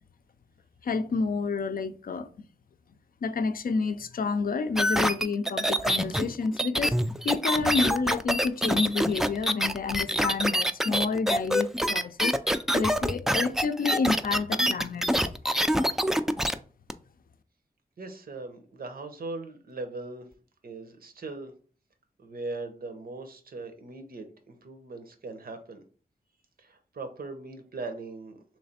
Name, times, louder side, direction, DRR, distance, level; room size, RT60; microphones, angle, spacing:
voice 1, 0.8-2.3 3.2-7.0 7.2-15.1, left 4 dB, 70° left, 0.4 m, -29 dB
sound 1, 4.8-16.5 16.9-17.0, equal, 5° right, 0.3 m, -25 dB
voice 2, 18.0-20.3 20.6-21.5 22.2-25.8 26.6-28.4, right 3 dB, 75° right, 0.8 m, -39 dB
3.2 x 3.2 x 4.2 m
wide cardioid pair, 80°, 15 cm